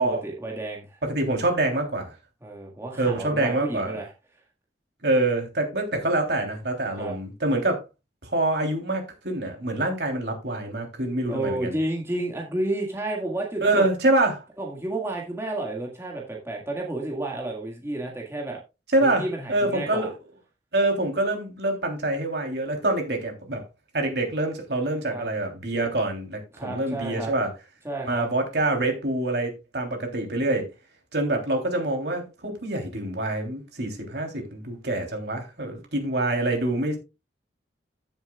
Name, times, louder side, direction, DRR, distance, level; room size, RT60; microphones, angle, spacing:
voice 1, 0.0-1.0 2.4-4.1 7.0-7.1 11.2-13.9 14.6-18.6 19.0-20.1 25.1-25.2 26.5-27.3 27.8-28.3, right 2 dB, 15° right, 1.8 m, -31 dB
voice 2, 1.0-2.1 3.0-4.0 5.0-7.8 8.2-11.7 13.6-14.4 18.9-20.1 20.7-23.6 23.9-27.5 28.1-30.7 31.1-37.0, right 2 dB, 65° right, 3.2 m, -26 dB
14.5 x 7.4 x 2.3 m
head